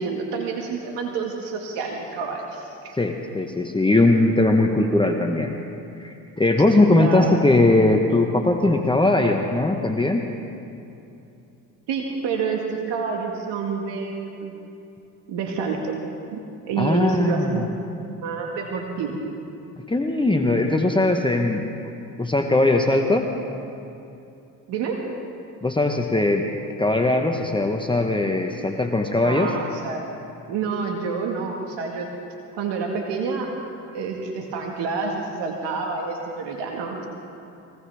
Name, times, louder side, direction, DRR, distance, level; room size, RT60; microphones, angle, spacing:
voice 1, 0.0-3.0 6.9-7.3 11.9-14.5 15.3-16.0 16.3-17.9 18.2-19.2 24.7-25.1 29.2-30.1 30.5-32.1 32.6-33.5 33.9-37.0, right 5 dB, 70° right, 1 dB, 1.9 m, -28 dB
voice 2, 3.0-5.5 6.0-10.3 16.8-17.6 19.9-21.9 22.2-23.3 25.6-26.4 26.8-29.5, left 2 dB, 10° left, 3 dB, 1.2 m, -20 dB
22.0 x 18.5 x 3.5 m, 2.7 s
supercardioid pair, 65°, 44 cm